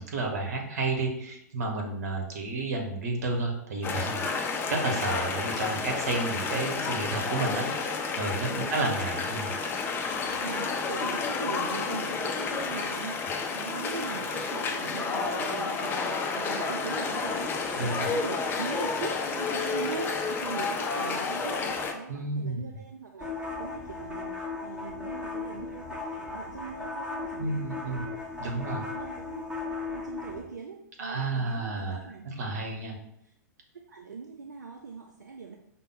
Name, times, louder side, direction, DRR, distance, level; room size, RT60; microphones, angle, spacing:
voice 1, 0.0-4.3 4.7-9.5 17.8-18.1 22.1-22.6 27.4-28.0 28.4-28.8 31.0-33.0, right 3 dB, 60° right, 2 dB, 1.0 m, -31 dB
sound 1, 3.8-21.9, left 4 dB, 20° left, 0.5 m, -31 dB
voice 2, 10.1-28.2 28.4-29.5 29.9-32.3 33.0-33.1 33.7-35.5, right 5 dB, 75° right, 4 dB, 0.4 m, -41 dB
sound 2, 23.2-30.4, left 3 dB, 10° right, 0.9 m, -37 dB
5.3 x 2.0 x 3.9 m, 0.79 s
figure-of-eight pair, 95°, 10 cm